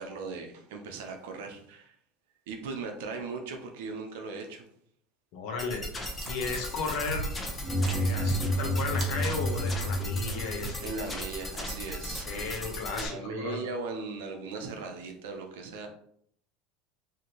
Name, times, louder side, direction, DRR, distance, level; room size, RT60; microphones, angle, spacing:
voice 1, 0.0-2.0 2.5-4.7 10.8-12.5 12.9-15.9, right 4 dB, 80° right, 4 dB, 0.6 m, -38 dB
voice 2, 5.3-5.9 6.3-7.3 7.8-10.9 12.3-13.6, left 4 dB, 65° left, 2 dB, 0.8 m, -35 dB
sound 1, 5.6-13.1, left 1 dB, 25° left, 0.8 m, -38 dB
sound 2, 5.9-12.6, right 3 dB, 40° right, 1.1 m, -42 dB
sound 3, 7.6-10.9, equal, 10° right, 1.0 m, -30 dB
2.8 x 2.6 x 2.9 m, 0.66 s
hypercardioid pair, 90°, 0 cm